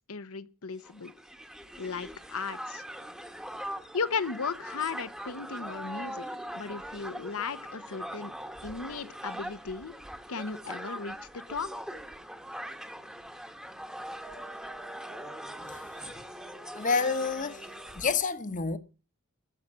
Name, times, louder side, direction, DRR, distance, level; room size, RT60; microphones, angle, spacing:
voice 1, 0.1-1.1 1.8-2.8 3.9-6.2 6.5-8.3 8.6-10.0 10.3-11.2 11.5-11.7, left 5 dB, 65° left, 0.9 m, -35 dB
Crowd, 0.8-18.2, equal, 5° right, 1.1 m, -41 dB
voice 2, 15.6-16.2 16.7-17.7 17.9-18.8, left 5 dB, 35° left, 1.1 m, -29 dB
13.5 x 5.9 x 9.7 m
head